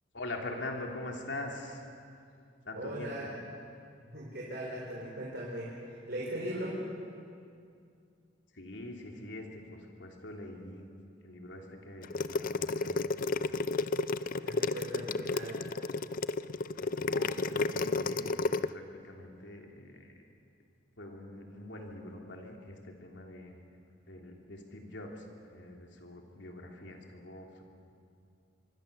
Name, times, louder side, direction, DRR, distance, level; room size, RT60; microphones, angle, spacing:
voice 1, 0.1-1.9 2.6-3.3 8.5-10.9 11.2-13.2 16.5-20.1 21.0-23.6 24.1-25.2 25.5-27.6, left 2 dB, 75° left, 1 dB, 3.2 m, -44 dB
voice 2, 2.7-3.3 4.1-6.8 14.4-15.6, right 1 dB, 60° right, -5 dB, 4.5 m, -39 dB
sound 1, 12.0-18.7, left 3 dB, 50° left, 0.5 m, -31 dB
25.0 x 23.5 x 6.9 m, 2.4 s
head